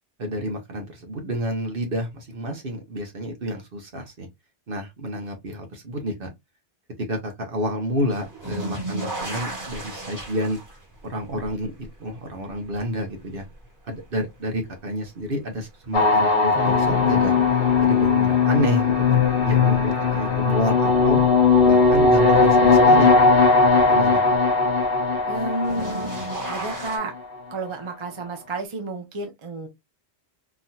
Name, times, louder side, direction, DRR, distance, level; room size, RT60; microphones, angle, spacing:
voice 1, 0.2-4.3 4.7-6.3 7.1-10.6 11.0-13.5 13.9-17.3 17.8-21.2 21.6-23.1 23.8-24.2, equal, 55° right, 1.2 m, -29 dB
sound 1, 8.1-15.1 15.6-16.3 17.9-18.0 19.5-19.6 25.3-27.0, right 2 dB, 15° right, 1.5 m, -35 dB
sound 2, 15.9-27.1, left 4 dB, 60° left, 1.1 m, -18 dB
voice 2, 25.3-26.1 26.5-27.1 27.5-29.7, right 2 dB, 30° right, 0.7 m, -31 dB
3.6 x 2.7 x 2.3 m
omnidirectional pair, 1.1 m